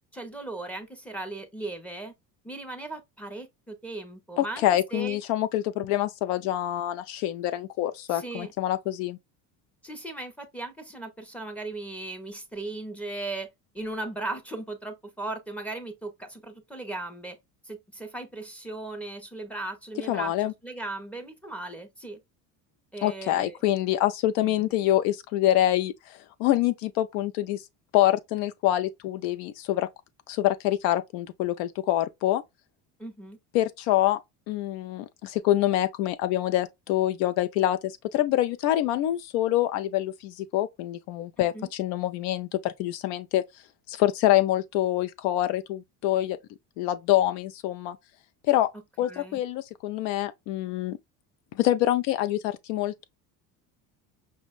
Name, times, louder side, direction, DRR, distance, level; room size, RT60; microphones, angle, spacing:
voice 1, 0.1-2.1 2.4-4.7 4.9-5.2 8.1-8.5 9.8-13.5 13.7-17.4 17.6-20.3 20.6-22.2 22.9-23.6 24.4-24.6 33.0-33.4 41.4-41.7 49.0-49.4, right 2 dB, 5° left, 0.5 m, -37 dB
voice 2, 4.4-9.2 20.1-20.5 23.0-27.6 27.9-29.9 30.3-32.4 33.5-34.2 34.5-43.4 43.9-46.4 46.8-48.0 48.5-48.7 49.0-51.0 51.6-53.0, left 14 dB, 90° left, 0.5 m, -26 dB
5.5 x 2.1 x 2.3 m
cardioid pair, 155°, 38 cm